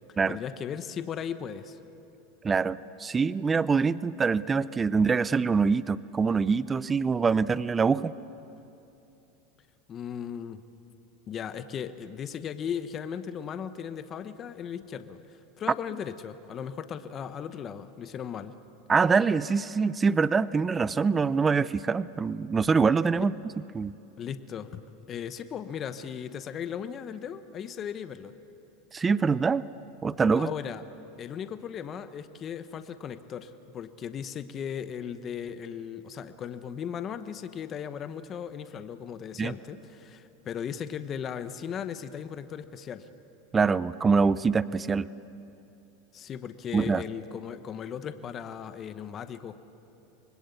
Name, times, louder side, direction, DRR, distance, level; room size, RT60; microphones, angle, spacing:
voice 1, 0.3-1.8 9.9-10.6 11.3-15.2 15.6-18.5 23.2-23.3 24.2-24.8 25.1-28.3 30.4-30.8 31.2-43.1 46.1-49.6, left 8 dB, 35° left, 10 dB, 1.1 m, -37 dB
voice 2, 2.4-8.1 18.9-23.3 23.7-23.9 28.9-29.6 30.0-30.5 39.4-39.5 43.5-45.1 46.7-47.0, right 5 dB, 20° right, 17 dB, 0.5 m, -24 dB
25.5 x 20.5 x 8.4 m, 2.8 s
supercardioid pair, 120°, 0 cm